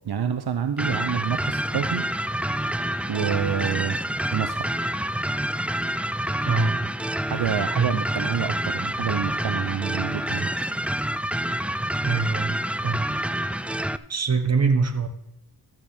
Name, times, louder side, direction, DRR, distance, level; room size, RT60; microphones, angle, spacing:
voice 1, 0.0-2.1 3.1-4.0 4.3-4.7 7.3-10.5, right 8 dB, 70° right, 9 dB, 0.8 m, -27 dB
sound 1, 0.8-14.0, right 1 dB, 5° right, 0.3 m, -27 dB
voice 2, 6.5-6.8 7.8-7.9 12.0-12.6 12.8-13.0 14.1-15.1, right 4 dB, 40° right, 8 dB, 1.4 m, -23 dB
13.5 x 8.8 x 4.4 m, 0.92 s
cardioid pair, 65°, 40 cm